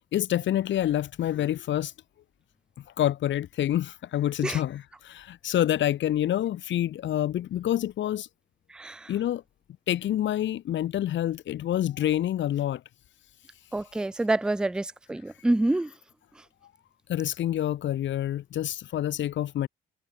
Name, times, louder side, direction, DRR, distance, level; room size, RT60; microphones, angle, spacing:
voice 1, 0.1-1.9 3.0-8.3 9.1-9.4 9.9-12.8 17.1-19.7, left 12 dB, 70° left, 1.4 m, -27 dB
voice 2, 8.7-9.1 13.7-15.9, right 2 dB, 5° right, 0.4 m, -27 dB
cardioid pair, 90°, 20 cm